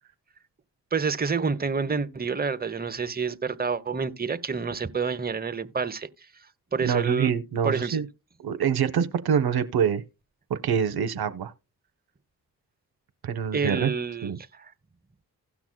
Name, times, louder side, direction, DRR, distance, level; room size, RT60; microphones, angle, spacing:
voice 1, 0.9-6.1 6.7-7.3 7.6-8.0 13.5-14.3, right 5 dB, 25° right, 0.9 m, -28 dB
voice 2, 6.8-8.1 8.4-10.0 10.5-11.5 13.2-13.9 14.2-14.4, right 7 dB, 65° right, 0.7 m, -25 dB
16.5 x 6.0 x 2.2 m
supercardioid pair, 45°, 40 cm